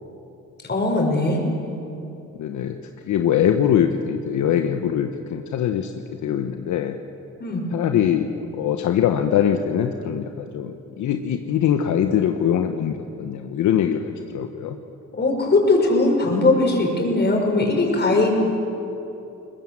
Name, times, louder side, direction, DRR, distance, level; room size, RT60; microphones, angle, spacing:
voice 1, 0.7-1.4 7.4-7.6 15.2-18.3, left 2 dB, 35° left, 1 dB, 5.6 m, -19 dB
voice 2, 2.4-2.7 3.1-5.9 6.2-7.0 7.7-14.8, left 9 dB, 75° left, 5 dB, 1.1 m, -22 dB
22.0 x 20.5 x 7.6 m, 2.9 s
cardioid pair, 90°, 30 cm